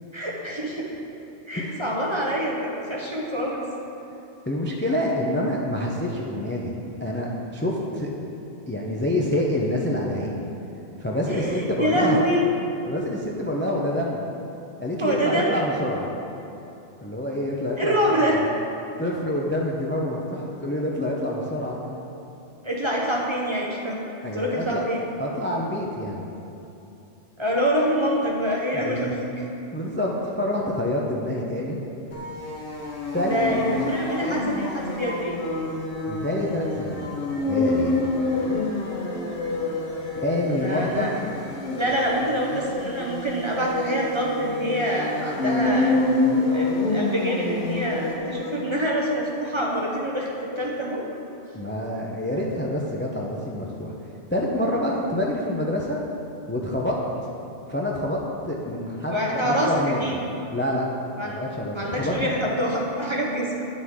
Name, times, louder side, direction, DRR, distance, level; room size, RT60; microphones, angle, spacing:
voice 1, 0.1-0.9 1.5-3.6 11.3-12.4 15.0-15.6 17.8-18.4 22.6-24.0 24.3-25.0 27.4-29.5 33.3-35.4 40.5-41.2 41.7-46.0 46.5-51.0 59.1-60.2 61.1-61.4 61.7-63.6, equal, 30° right, -3 dB, 0.7 m, -26 dB
voice 2, 4.5-6.7 7.0-8.1 8.7-10.5 11.0-12.2 12.9-14.3 14.8-16.1 17.0-18.5 19.0-21.8 24.2-24.8 25.2-26.2 28.7-29.2 29.7-31.8 33.1-33.4 36.1-37.0 37.5-38.1 40.2-41.1 51.5-53.9 54.3-56.0 56.5-57.0 57.7-58.2 58.4-60.2 60.5-60.9 61.2-62.3, left 1 dB, 15° left, -2 dB, 0.4 m, -27 dB
sound 1, 32.1-48.7, left 2 dB, 50° left, 1.3 m, -27 dB
9.6 x 6.2 x 3.6 m, 2.8 s
omnidirectional pair, 1.2 m